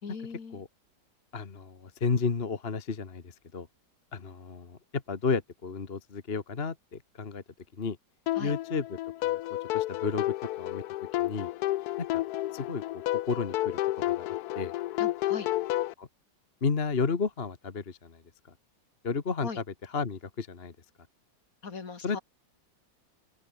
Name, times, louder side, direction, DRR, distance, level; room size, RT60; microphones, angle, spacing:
voice 1, 0.0-0.6 8.4-8.5 15.0-15.5 19.4-19.6 21.6-22.2, left 5 dB, 50° left, 2.4 m, -39 dB
voice 2, 1.3-3.7 4.1-7.4 7.8-8.0 8.4-9.4 9.7-10.8 11.2-11.5 12.0-12.2 12.5-13.8 14.1-14.3 14.5-14.7 16.0-16.1 16.6-18.2 19.0-19.6 19.9-20.7 22.0-22.2, left 5 dB, 35° left, 1.6 m, -32 dB
sound 1, 8.3-15.9, left 15 dB, 70° left, 1.0 m, -31 dB
omnidirectional pair, 2.0 m